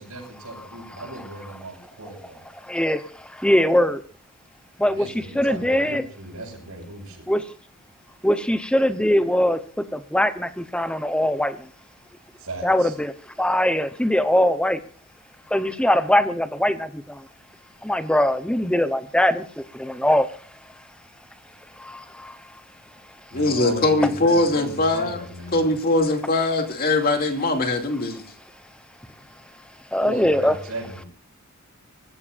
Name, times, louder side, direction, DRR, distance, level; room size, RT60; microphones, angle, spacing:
voice 1, 0.0-2.4 4.9-7.0 12.4-12.9 23.3-25.6 30.0-31.1, right 2 dB, 85° right, -5 dB, 6.0 m, -36 dB
voice 2, 2.6-4.0 4.8-6.0 7.3-7.4 8.2-11.7 12.6-13.1 13.4-14.8 15.5-17.2 17.8-20.3 21.8-22.4 29.9-30.6, left 1 dB, 5° left, 11 dB, 0.9 m, -22 dB
voice 3, 23.3-25.2 25.5-28.3, left 2 dB, 40° left, 4 dB, 2.6 m, -21 dB
24.5 x 15.0 x 2.6 m, 0.40 s
head